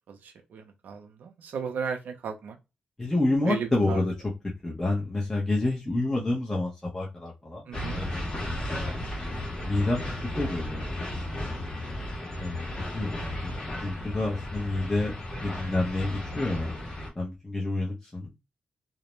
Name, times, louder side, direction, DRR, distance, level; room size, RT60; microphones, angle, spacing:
voice 1, 0.1-2.6 3.4-4.0 7.7-8.0, right 6 dB, 85° right, 0.5 m, -35 dB
voice 2, 3.0-4.1 4.6-7.7 7.9-8.6 9.6-10.0 10.4-11.0 12.4-12.6 12.9-13.1 13.4-16.7 17.2-18.3, left 2 dB, 15° left, 0.7 m, -28 dB
sound 1, 7.7-17.1, left 1 dB, 30° left, 1.0 m, -34 dB
2.4 x 2.1 x 3.0 m
wide cardioid pair, 125°, 3 cm